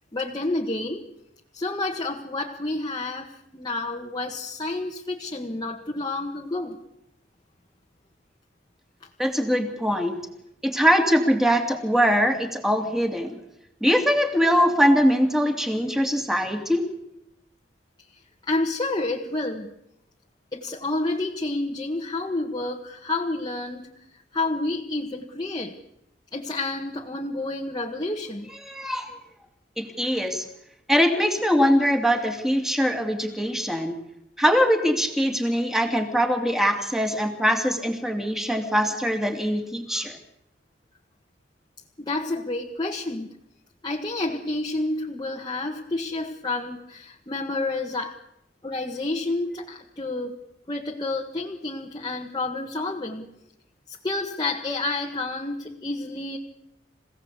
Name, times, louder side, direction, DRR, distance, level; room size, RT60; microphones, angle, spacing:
voice 1, 0.1-1.0 1.5-6.8 9.0-9.1 18.4-19.7 20.5-23.9 24.3-25.7 26.3-28.5 42.0-43.3 43.8-48.1 48.6-50.4 50.7-53.3 53.9-56.4, left 2 dB, 25° left, -1 dB, 1.6 m, -29 dB
voice 2, 9.2-10.2 10.6-13.4 13.8-16.9 28.7-29.1 29.8-30.4 30.9-33.9 34.4-40.2, equal, ahead, 5 dB, 2.8 m, -22 dB
26.5 x 17.0 x 8.4 m, 0.82 s
head